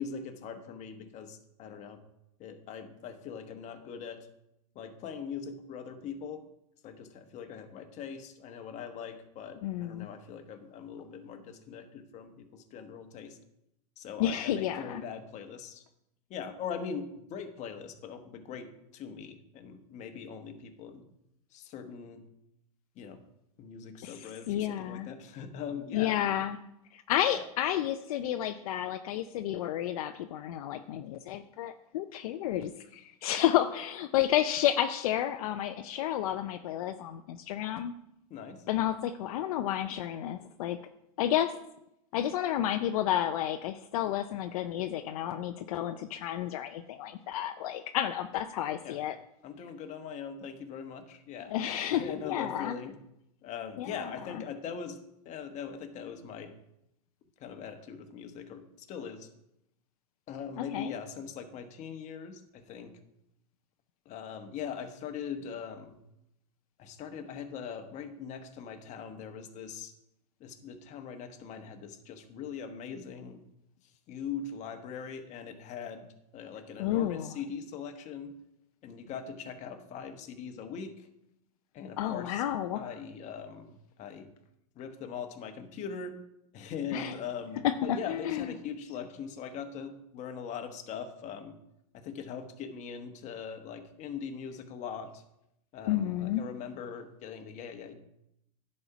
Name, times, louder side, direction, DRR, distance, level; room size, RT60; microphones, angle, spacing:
voice 1, 0.0-2.0 2.4-4.3 4.7-6.4 6.8-13.4 14.0-15.8 16.3-21.0 21.5-22.2 23.0-23.2 23.6-26.2 27.4-27.5 33.4-33.5 38.3-38.6 48.8-49.0 49.4-51.5 51.9-53.0 53.4-55.0 55.2-56.5 57.4-59.3 60.3-62.9 64.0-66.0 66.8-69.9 70.4-73.4 74.1-76.1 76.3-78.3 78.8-81.1 81.7-82.4 82.7-84.3 84.7-86.2 86.5-91.5 91.9-95.2 95.7-97.9, left 6 dB, 40° left, 6 dB, 1.1 m, -41 dB
voice 2, 9.6-10.1 14.2-15.0 24.0-25.1 25.9-26.6 26.9-37.9 38.7-40.8 41.2-41.5 42.1-49.2 51.5-52.8 53.8-53.9 60.6-60.9 76.8-77.3 82.0-82.9 86.9-87.1 87.6-88.5 95.9-96.4, left 11 dB, 70° left, 8 dB, 0.5 m, -31 dB
11.0 x 4.3 x 5.8 m, 0.82 s
hypercardioid pair, 120°, 19 cm